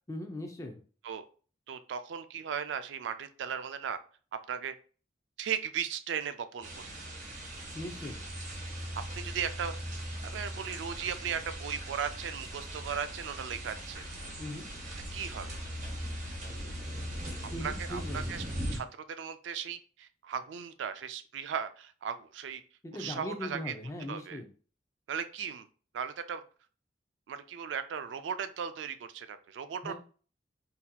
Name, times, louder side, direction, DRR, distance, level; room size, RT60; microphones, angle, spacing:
voice 1, 0.1-0.8 7.7-8.2 14.4-14.7 17.5-18.4 22.8-24.5 29.8-29.9, left 1 dB, 15° left, 4 dB, 0.4 m, -39 dB
voice 2, 1.7-4.0 4.5-4.7 5.4-6.9 9.2-10.0 10.2-14.0 15.1-15.5 17.4-18.4 18.7-22.6 22.9-23.7 24.1-24.4 25.1-25.7 25.9-26.4 27.3-29.9, right 7 dB, 85° right, 10 dB, 0.3 m, -37 dB
sound 1, 6.6-18.8, equal, 40° right, 0.9 m, -39 dB
4.0 x 2.7 x 2.2 m, 0.40 s
head